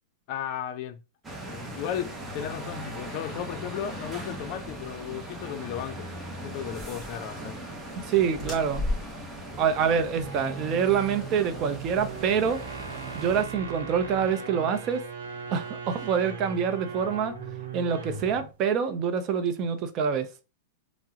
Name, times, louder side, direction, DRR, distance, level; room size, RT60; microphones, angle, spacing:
voice 1, 0.3-1.0 1.5-6.1 6.4-7.6, left 9 dB, 50° left, 0.4 m, -35 dB
sound 1, 1.2-13.4, right 1 dB, 10° right, 0.8 m, -39 dB
voice 2, 8.0-8.8 9.6-12.6 13.1-15.0 15.5-17.4 17.7-20.3, right 7 dB, 40° right, 0.5 m, -26 dB
sound 2, 8.3-12.9, left 2 dB, 20° left, 1.8 m, -37 dB
sound 3, 10.0-18.5, right 5 dB, 85° right, 0.8 m, -39 dB
3.5 x 2.0 x 2.8 m
hypercardioid pair, 130°, 0 cm